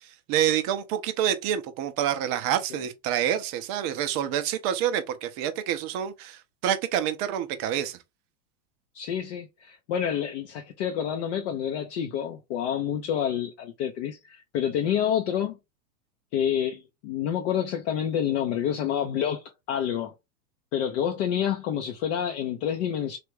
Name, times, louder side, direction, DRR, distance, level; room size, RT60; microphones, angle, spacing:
voice 1, 0.0-8.0, right 10 dB, 30° right, 0.5 m, -27 dB
voice 2, 8.9-15.6 16.3-20.1 20.7-23.2, left 9 dB, 45° left, 0.6 m, -28 dB
3.3 x 2.4 x 3.1 m
hypercardioid pair, 105°, 47 cm